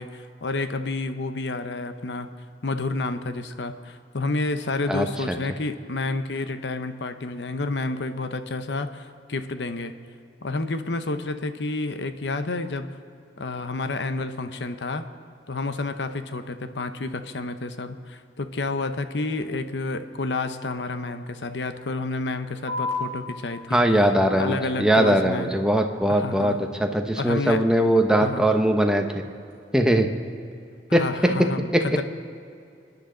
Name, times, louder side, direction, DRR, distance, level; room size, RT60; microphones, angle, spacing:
voice 1, 0.0-2.3 2.6-9.9 10.4-12.9 13.4-15.0 15.5-23.8 24.4-25.5 26.1-26.6 27.2-27.6 28.1-28.4 30.9-32.0, left 3 dB, 80° left, 9 dB, 0.8 m, -30 dB
voice 2, 4.9-5.4 23.7-29.1 29.7-30.1 30.9-31.8, right 1 dB, 5° right, 3 dB, 0.9 m, -21 dB
sound 1, 22.7-29.7, left 3 dB, 15° left, 3.3 m, -39 dB
28.5 x 10.0 x 3.9 m, 2.5 s
head